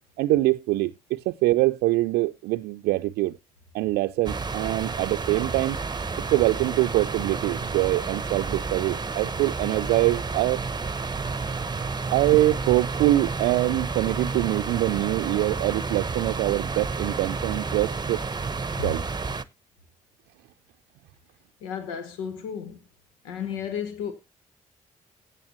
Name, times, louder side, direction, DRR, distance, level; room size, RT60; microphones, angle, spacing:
voice 1, 0.2-3.4 3.7-5.8 6.2-10.6 12.1-18.2 18.8-19.1, right 17 dB, 75° right, 0.5 m, -24 dB
sound 1, 4.2-19.4, right 4 dB, 25° right, 0.9 m, -31 dB
voice 2, 21.6-22.8 23.2-24.1, left 8 dB, 85° left, 1.2 m, -33 dB
15.5 x 7.0 x 3.0 m
hypercardioid pair, 40°, 17 cm